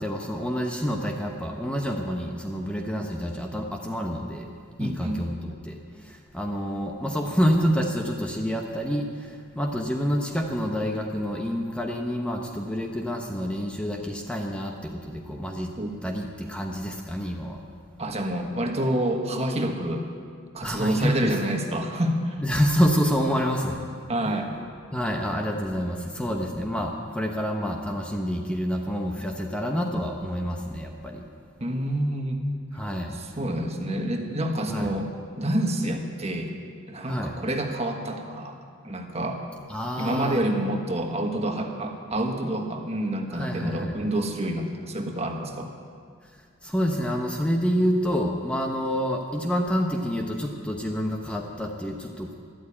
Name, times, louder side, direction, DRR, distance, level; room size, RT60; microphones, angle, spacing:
voice 1, 0.0-4.5 4.8-15.7 16.0-17.6 20.6-21.4 22.4-23.8 24.2-24.4 24.9-31.2 32.7-33.2 34.7-34.9 37.1-37.4 39.7-40.4 43.3-44.0 46.6-52.3, equal, 5° left, 1 dB, 0.9 m, -28 dB
voice 2, 4.8-5.2 15.8-16.0 18.0-20.0 20.5-22.4 24.1-24.5 31.6-32.4 33.2-36.5 36.9-38.5 38.8-39.4 40.0-45.7, right 1 dB, 30° right, 3 dB, 1.4 m, -28 dB
13.0 x 12.0 x 8.7 m, 2.1 s
head